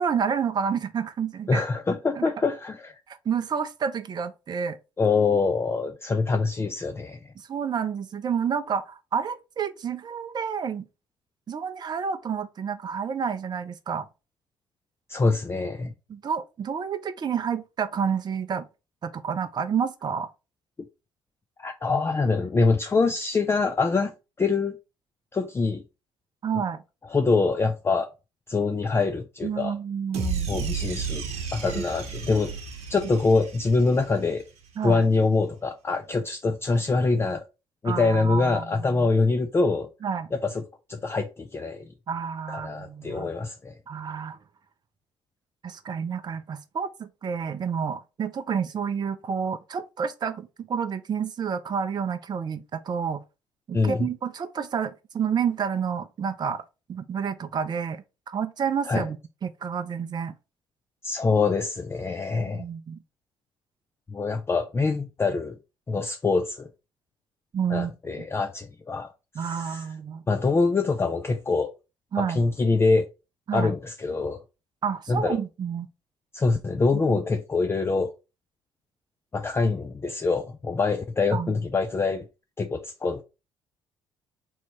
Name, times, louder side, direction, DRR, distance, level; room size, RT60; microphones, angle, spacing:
voice 1, 0.0-1.6 2.2-2.3 3.1-4.8 7.5-10.9 11.5-14.1 16.1-18.7 19.0-20.3 26.4-26.8 29.4-30.7 31.8-31.9 34.8-35.0 37.8-39.1 40.0-40.3 42.1-43.3 43.9-44.4 45.6-53.2 53.7-56.6 56.9-60.3 62.5-63.0 67.5-67.9 69.3-70.2 72.1-72.4 73.5-73.7 74.8-75.9 77.1-77.2 81.3-81.5, right 7 dB, 35° right, 0.5 m, -29 dB
voice 2, 1.5-3.0 5.0-7.3 15.1-15.9 21.6-24.1 24.4-24.8 25.3-25.8 27.1-28.1 28.5-29.8 30.5-31.3 31.5-32.5 32.9-34.4 34.8-37.5 37.8-39.9 40.3-40.6 40.9-41.9 42.5-43.7 53.7-54.1 58.9-59.1 61.0-62.6 64.1-65.6 65.9-66.7 67.7-69.1 69.4-69.8 70.3-71.7 72.2-73.1 73.5-74.4 75.1-75.4 76.3-78.1 79.3-82.3 82.6-83.2, left 4 dB, 20° left, 0.4 m, -24 dB
sound 1, 30.1-34.5, right 5 dB, 60° right, 0.9 m, -33 dB
3.2 x 2.9 x 4.0 m
figure-of-eight pair, 50°, 13 cm